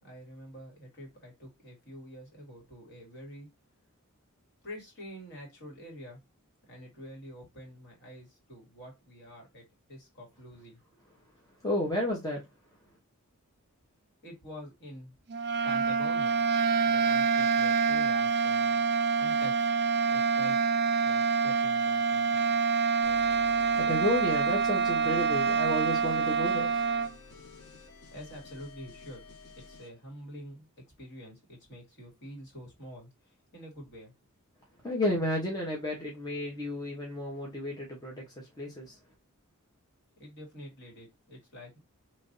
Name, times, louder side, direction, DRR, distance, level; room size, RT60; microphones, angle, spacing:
voice 1, 0.0-3.5 4.6-6.2 6.7-9.6 9.9-10.8 14.2-15.1 15.6-16.4 16.8-18.8 19.2-19.7 20.1-20.6 21.0-22.6 28.1-29.2 29.6-30.7 31.0-34.1 40.2-41.8, equal, 55° left, 2.2 m, -47 dB
voice 2, 11.6-12.4 23.8-26.7 34.8-39.0, left 1 dB, 20° left, 1.0 m, -32 dB
sound 1, 15.3-27.1, right 5 dB, 50° right, 0.3 m, -26 dB
sound 2, 23.0-29.9, left 2 dB, 90° left, 1.2 m, -51 dB
3.2 x 2.5 x 3.9 m
head